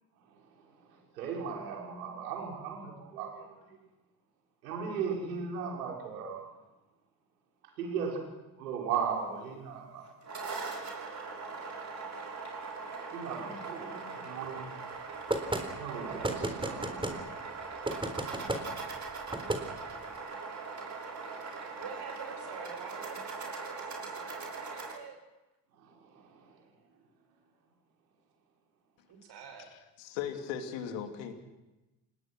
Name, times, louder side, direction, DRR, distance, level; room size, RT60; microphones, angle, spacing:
voice 1, 0.9-3.8 4.6-6.5 7.8-8.2 8.6-10.1 13.1-14.7 15.8-17.3 25.8-26.6, right 6 dB, 75° right, 0 dB, 5.6 m, -37 dB
sound 1, 10.0-24.9, right 4 dB, 35° right, 6.6 m, -41 dB
sound 2, 15.3-15.6 16.2-17.2 17.9-18.6 19.3-19.6, right 1 dB, 10° right, 3.9 m, -32 dB
voice 2, 21.8-25.2 29.1-29.7, right 6 dB, 55° right, 5 dB, 6.3 m, -47 dB
voice 3, 30.0-31.3, left 8 dB, 60° left, 6 dB, 3.0 m, -37 dB
28.5 x 19.5 x 6.2 m, 1.0 s
figure-of-eight pair, 50°, 49 cm